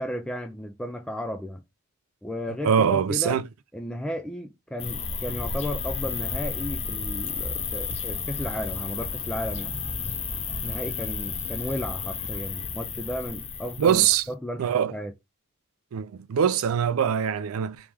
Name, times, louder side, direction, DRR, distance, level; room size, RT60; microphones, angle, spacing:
voice 1, 0.0-1.6 2.2-3.4 3.7-9.8 10.6-14.6 14.9-15.1, equal, 5° left, 0.3 m, -34 dB
voice 2, 2.6-3.4 13.8-14.2 14.6-14.9 15.9-17.9, right 8 dB, 80° right, 0.4 m, -23 dB
sound 1, 4.8-14.2, left 5 dB, 30° left, 0.6 m, -32 dB
3.2 x 3.0 x 3.4 m
head